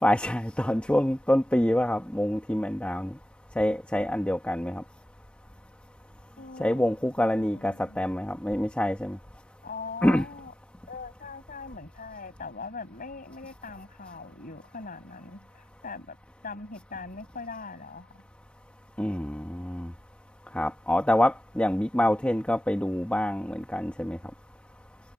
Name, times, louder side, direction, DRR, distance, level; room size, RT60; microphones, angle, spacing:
voice 1, 0.0-3.2 3.6-4.8 6.6-9.2 10.0-10.3 19.0-19.9 20.5-24.2, left 1 dB, 5° left, 1.0 m, -26 dB
voice 2, 6.4-8.0 9.6-10.5 10.9-16.2 16.4-18.2, left 4 dB, 40° left, 6.2 m, -41 dB
head